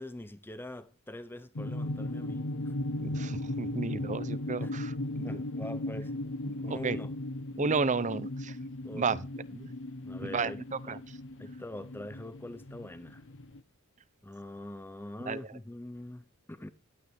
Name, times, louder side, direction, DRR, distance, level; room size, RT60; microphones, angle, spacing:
voice 1, 0.0-2.7 4.6-4.7 5.2-6.1 6.6-7.2 8.8-9.2 10.0-11.0 11.4-13.2 14.2-16.7, left 1 dB, 10° left, 0.6 m, -43 dB
sound 1, 1.6-13.6, left 1 dB, 60° left, 0.9 m, -37 dB
voice 2, 3.0-5.4 6.5-7.0 7.6-8.6 8.9-9.2 9.5-9.7 10.2-11.0 15.3-15.4, right 4 dB, 35° right, 0.6 m, -33 dB
11.5 x 8.9 x 3.5 m
head